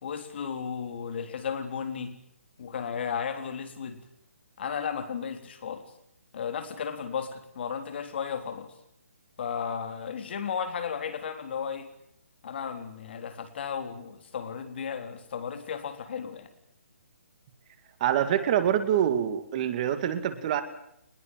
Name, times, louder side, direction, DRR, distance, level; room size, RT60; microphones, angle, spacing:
voice 1, 0.0-2.1 2.6-4.0 4.6-5.9 6.3-8.7 9.4-11.9 12.4-16.5, left 7 dB, 45° left, 8 dB, 3.6 m, -34 dB
voice 2, 18.0-20.6, right 10 dB, 30° right, 9 dB, 2.3 m, -25 dB
23.5 x 21.0 x 9.2 m, 0.75 s
hypercardioid pair, 160°, 8 cm